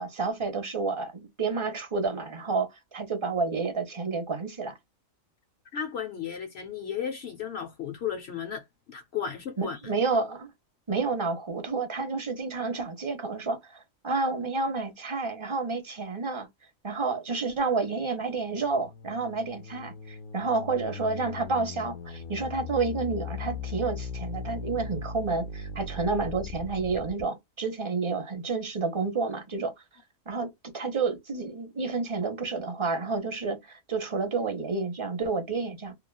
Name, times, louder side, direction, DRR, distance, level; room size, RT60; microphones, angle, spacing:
voice 1, 0.0-4.8 9.6-10.5 10.9-16.5 16.8-29.7 30.3-35.9, right 4 dB, 30° right, 0.6 m, -30 dB
voice 2, 5.7-9.8, left 8 dB, 60° left, 0.8 m, -34 dB
sound 1, 18.4-27.2, left 5 dB, 85° left, 1.1 m, -39 dB
3.1 x 2.3 x 2.2 m
omnidirectional pair, 1.4 m